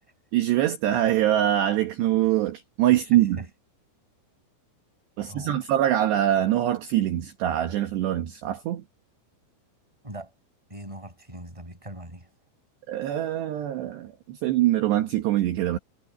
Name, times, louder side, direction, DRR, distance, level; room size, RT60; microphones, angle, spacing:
voice 1, 0.3-3.4 5.2-8.8 12.9-15.8, right 12 dB, 65° right, 3.2 m, -24 dB
voice 2, 3.1-3.5 5.3-5.6 10.0-10.3 10.7-12.3, right 1 dB, 5° right, 6.8 m, -41 dB
omnidirectional pair, 5.9 m